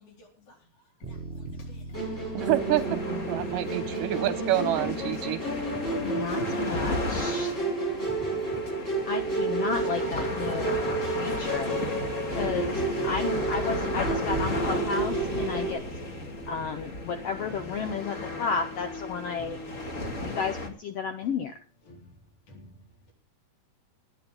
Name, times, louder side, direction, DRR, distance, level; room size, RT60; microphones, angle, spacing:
voice 1, 1.0-2.5 3.4-4.4 5.1-9.4 10.4-11.6 16.2-16.4 17.5-17.7 19.4-19.7 20.0-20.4 21.2-21.3 21.9-23.1, equal, 55° left, 5.4 m, -50 dB
Bass guitar, 1.0-7.3, equal, 50° right, 0.7 m, -44 dB
Musical instrument, 1.9-15.7, right 3 dB, 15° left, 4.5 m, -31 dB
voice 2, 2.3-3.0 3.3-5.4, right 13 dB, 75° right, 2.2 m, -27 dB
sound 1, 2.5-20.7, left 2 dB, 30° left, 1.7 m, -35 dB
voice 3, 6.0-7.5 9.0-10.9 11.2-11.8 12.3-15.8 16.5-19.6 20.2-21.6, left 5 dB, 85° left, 1.3 m, -32 dB
18.5 x 11.0 x 3.7 m
omnidirectional pair, 4.2 m